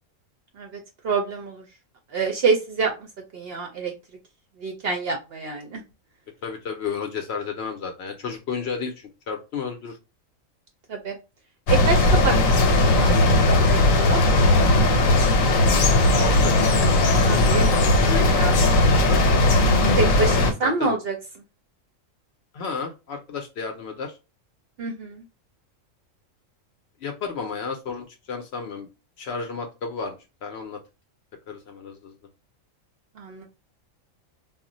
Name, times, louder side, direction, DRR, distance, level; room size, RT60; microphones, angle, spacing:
voice 1, 0.6-1.6 2.1-2.9 3.3-3.9 4.6-5.8 10.9-11.2 11.7-14.2 17.1-17.6 18.2-18.8 20.0-21.2 24.8-25.2 33.2-33.4, right 4 dB, 60° right, 3 dB, 0.7 m, -27 dB
voice 2, 6.4-10.0 16.1-16.6 17.3-17.7 18.0-18.3 18.8-19.2 20.6-20.9 22.5-24.1 27.0-28.9 29.2-30.8 31.5-32.1, left 5 dB, 65° left, 4 dB, 0.7 m, -32 dB
sound 1, 11.7-20.5, left 2 dB, 85° left, 1.0 m, -18 dB
2.4 x 2.1 x 3.8 m, 0.28 s
omnidirectional pair, 1.4 m